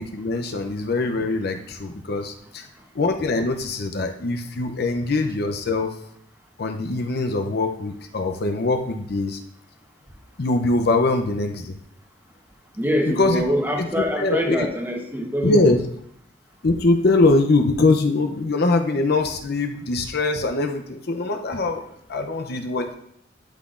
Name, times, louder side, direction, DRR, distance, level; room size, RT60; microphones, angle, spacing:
voice 1, 0.0-2.7 2.9-5.9 6.6-9.4 10.4-11.7 13.1-13.4 13.8-14.6 15.4-15.8 16.6-21.8 22.1-23.0, left 2 dB, 60° left, 5 dB, 0.6 m, -22 dB
voice 2, 12.8-15.7, equal, 10° right, 2 dB, 1.0 m, -24 dB
12.0 x 5.9 x 2.5 m, 0.70 s
head